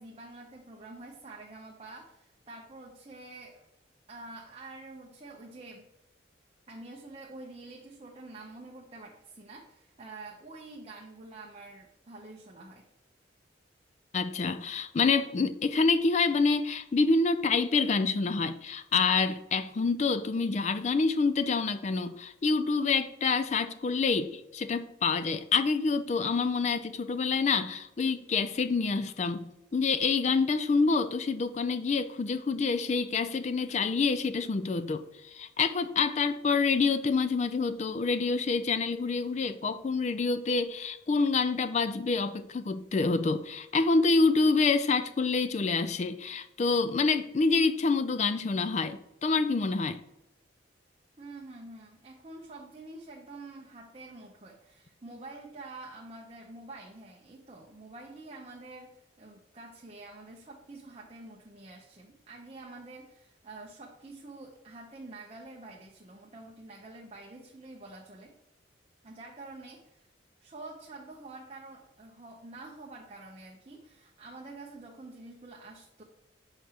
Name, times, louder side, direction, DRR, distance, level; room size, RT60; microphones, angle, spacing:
voice 1, 0.0-3.6 4.1-5.9 6.7-12.8 51.2-68.3 69.0-70.1 70.4-76.0, right 2 dB, 30° right, 0.7 m, -47 dB
voice 2, 14.1-50.0, left 4 dB, 35° left, 0.3 m, -27 dB
7.2 x 4.9 x 2.9 m
head